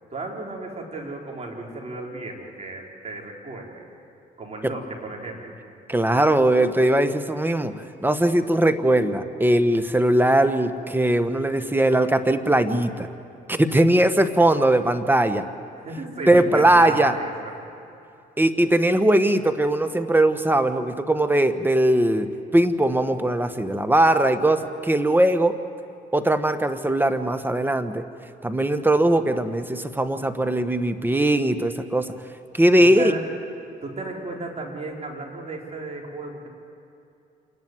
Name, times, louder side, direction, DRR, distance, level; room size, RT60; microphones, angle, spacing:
voice 1, 0.1-3.8 4.4-5.6 15.8-17.5 32.8-33.3 33.8-36.5, right 2 dB, 40° right, -1 dB, 4.2 m, -34 dB
voice 2, 5.9-13.1 13.5-15.4 16.3-17.1 18.4-25.5 26.1-28.1 28.4-32.1 32.5-33.1, right 1 dB, 10° right, 10 dB, 1.2 m, -20 dB
27.5 x 11.0 x 9.4 m, 2.6 s
supercardioid pair, 70°, 17 cm